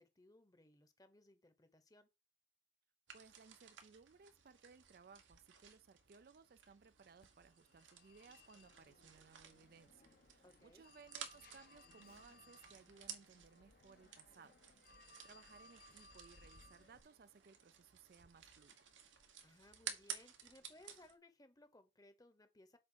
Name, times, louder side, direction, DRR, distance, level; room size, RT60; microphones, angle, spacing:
voice 1, 0.0-2.1 10.4-10.8 19.4-22.8, left 1 dB, 20° left, 0.9 m, -64 dB
voice 2, 3.1-14.6 14.9-18.8, right 5 dB, 50° right, 0.4 m, -63 dB
sound 1, 3.1-21.1, right 8 dB, 90° right, 1.4 m, -55 dB
Telephone, 7.2-17.0, left 2 dB, 50° left, 0.8 m, -65 dB
7.7 x 3.6 x 6.2 m
head